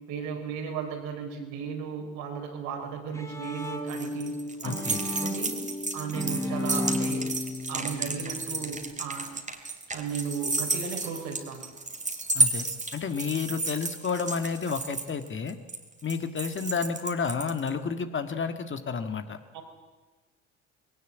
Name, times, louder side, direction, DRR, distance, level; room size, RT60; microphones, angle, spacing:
voice 1, 0.1-4.4 4.6-5.5 5.9-7.3 7.7-9.3 9.9-11.6 19.5-19.6, right 6 dB, 70° right, 3 dB, 4.6 m, -35 dB
Bowed string instrument, 2.8-8.9, left 2 dB, 10° left, 2.2 m, -34 dB
sound 1, 3.4-17.7, right 3 dB, 20° right, 2.8 m, -32 dB
voice 2, 4.6-5.0 12.3-12.7 12.9-15.6 16.0-19.4, left 5 dB, 35° left, 8 dB, 1.9 m, -31 dB
20.5 x 18.0 x 8.2 m, 1.3 s
hypercardioid pair, 65°, 36 cm